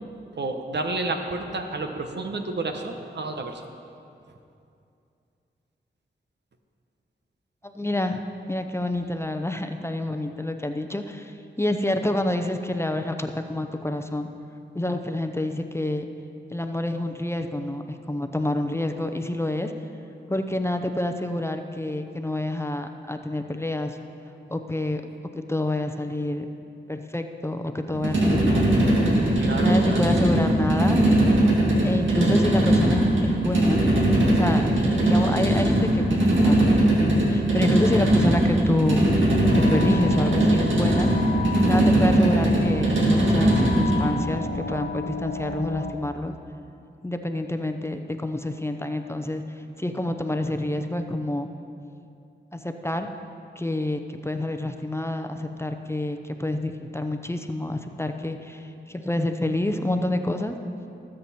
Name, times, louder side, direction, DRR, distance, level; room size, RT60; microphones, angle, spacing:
voice 1, 0.3-3.6 29.4-30.1, right 2 dB, 65° right, 5 dB, 1.1 m, -30 dB
voice 2, 7.6-8.2 8.5-14.3 14.7-16.0 16.5-19.7 20.3-24.0 24.5-25.0 25.3-26.5 26.9-28.7 29.6-31.0 31.8-33.8 34.3-34.7 35.0-36.7 37.0-39.0 39.7-41.1 41.7-46.3 47.0-49.4 49.8-51.5 52.5-53.1 53.6-60.5, left 1 dB, 15° left, 6 dB, 0.8 m, -28 dB
sound 1, 27.9-44.1, right 1 dB, 90° right, 2.3 m, -20 dB
sound 2, 39.3-45.9, left 4 dB, 60° left, 0.7 m, -33 dB
19.0 x 7.9 x 4.3 m, 2.6 s
cardioid pair, 50°, 19 cm